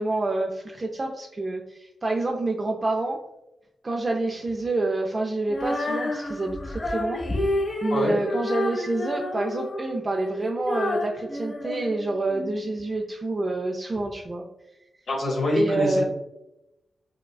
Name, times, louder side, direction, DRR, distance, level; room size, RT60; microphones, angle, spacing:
voice 1, 0.0-3.2 3.8-7.2 7.8-14.4 15.5-16.0, right 2 dB, 40° right, 1 dB, 0.4 m, -27 dB
Female singing, 5.5-12.5, left 1 dB, 40° left, 0.9 m, -30 dB
voice 2, 15.1-16.0, left 1 dB, 60° left, -2 dB, 1.2 m, -25 dB
4.8 x 2.2 x 2.3 m, 0.88 s
cardioid pair, 50°, 0 cm